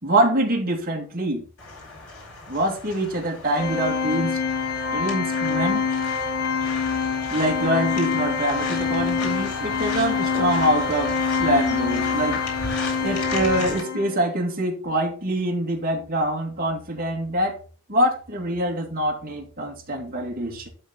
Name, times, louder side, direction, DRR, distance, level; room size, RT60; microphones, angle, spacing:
voice 1, 0.0-1.4 2.5-4.4 4.9-5.8 7.3-12.4 13.0-17.5 17.9-20.7, right 1 dB, 40° right, 0 dB, 2.3 m, -25 dB
sound 1, 1.6-13.8, left 2 dB, 85° left, 4.6 m, -36 dB
Organ, 3.5-14.3, left 5 dB, 45° left, 1.0 m, -25 dB
12.0 x 4.1 x 4.5 m, 0.39 s
head